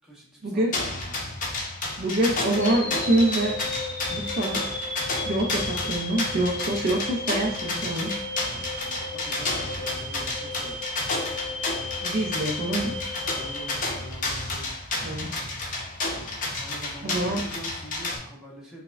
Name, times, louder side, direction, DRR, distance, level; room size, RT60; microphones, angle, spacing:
voice 1, 0.4-0.8 2.0-3.5 4.1-4.6 5.2-8.1 12.0-13.0 15.0-15.3 17.0-17.5, right 1 dB, 45° right, -1 dB, 0.4 m, -25 dB
sound 1, 0.7-18.2, left 2 dB, 40° left, 0.6 m, -31 dB
sound 2, 2.5-14.7, left 2 dB, 15° left, 1.1 m, -35 dB
voice 2, 8.5-10.8 13.3-14.7 16.6-18.8, right 1 dB, ahead, -5 dB, 0.8 m, -44 dB
4.7 x 2.1 x 2.4 m, 0.64 s
head